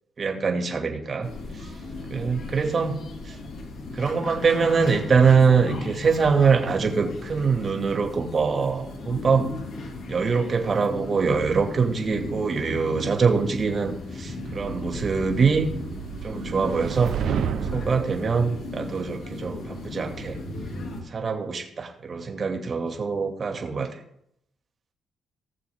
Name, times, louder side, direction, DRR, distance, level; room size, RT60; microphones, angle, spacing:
voice 1, 0.2-1.7 2.1-3.0 3.3-3.4 3.9-9.5 10.1-15.7 16.2-17.1 17.7-20.4 21.1-23.9, right 5 dB, 40° right, 3 dB, 2.2 m, -23 dB
sound 1, 1.2-21.0, left 2 dB, 70° left, 3.3 m, -36 dB
sound 2, 14.4-18.1, right 8 dB, 70° right, 0.9 m, -31 dB
19.0 x 6.7 x 3.6 m, 0.75 s
cardioid pair, 90°, 0 cm